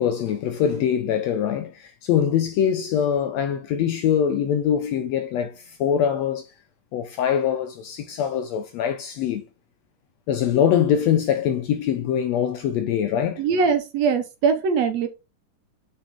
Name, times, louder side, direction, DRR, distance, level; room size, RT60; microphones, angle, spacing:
voice 1, 0.0-6.5 6.9-9.4 10.3-13.4, left 9 dB, 75° left, 1.6 m, -23 dB
voice 2, 13.4-15.1, right 5 dB, 65° right, 1.9 m, -21 dB
6.9 x 5.9 x 3.6 m
omnidirectional pair, 3.6 m